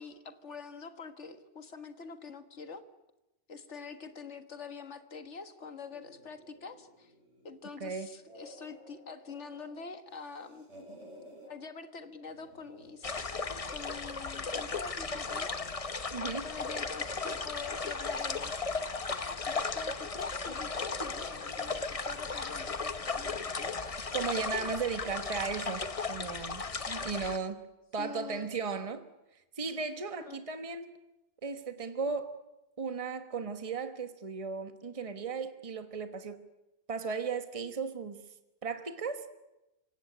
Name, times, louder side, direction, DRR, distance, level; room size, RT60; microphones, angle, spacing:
voice 1, 0.0-2.8 3.5-7.1 7.4-10.7 11.4-15.7 16.4-18.7 19.5-23.7 28.0-28.5 30.3-30.4, left 5 dB, 85° left, 1.9 m, -45 dB
sound 1, 5.9-7.6 8.1-9.7 10.1-11.5 12.3-13.1, equal, 85° right, 7.5 m, -54 dB
sound 2, 13.0-27.4, left 4 dB, 35° left, 1.0 m, -36 dB
voice 2, 16.1-16.5 24.1-27.6 27.9-29.0 29.6-30.9 31.4-32.3 32.8-36.4 36.9-38.2 38.6-39.2, right 5 dB, 30° right, 1.3 m, -36 dB
26.0 x 16.5 x 9.9 m
omnidirectional pair, 1.2 m